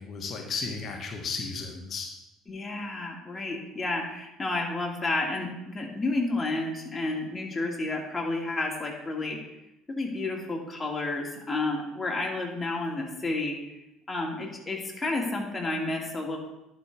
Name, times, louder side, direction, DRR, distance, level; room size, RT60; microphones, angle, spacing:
voice 1, 0.0-2.1, left 4 dB, 50° left, 2 dB, 1.3 m, -34 dB
voice 2, 2.5-9.4 9.9-13.6 14.1-16.4, left 2 dB, 20° left, -1 dB, 2.3 m, -31 dB
11.5 x 5.4 x 3.6 m, 0.89 s
hypercardioid pair, 60°, 0 cm